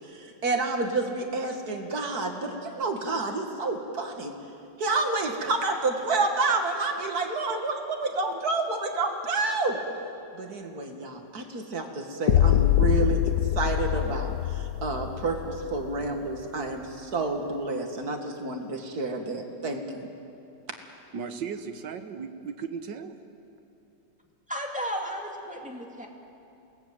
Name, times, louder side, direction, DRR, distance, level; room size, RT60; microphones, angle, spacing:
voice 1, 0.1-4.3 4.8-9.9 10.3-20.1, right 3 dB, 55° right, 4 dB, 2.5 m, -29 dB
sound 1, 12.3-16.3, left 12 dB, 65° left, 1.0 m, -24 dB
voice 2, 21.1-23.2, right 6 dB, 70° right, 8 dB, 1.9 m, -36 dB
voice 3, 24.5-26.1, equal, 5° right, 0 dB, 2.4 m, -34 dB
27.5 x 19.5 x 7.7 m, 2.7 s
omnidirectional pair, 2.0 m